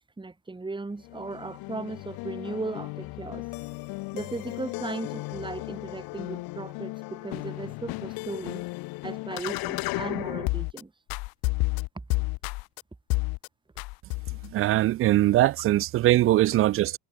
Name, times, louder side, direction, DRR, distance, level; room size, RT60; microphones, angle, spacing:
voice 1, 0.0-3.5 4.1-8.6 9.0-10.9, right 3 dB, 10° right, 2.5 m, -37 dB
sound 1, 1.0-10.8 11.1-12.8 13.1-13.5 13.8-14.5, left 24 dB, 60° left, 0.6 m, -33 dB
voice 2, 14.5-17.0, right 15 dB, 35° right, 0.4 m, -21 dB
supercardioid pair, 100°, 42 cm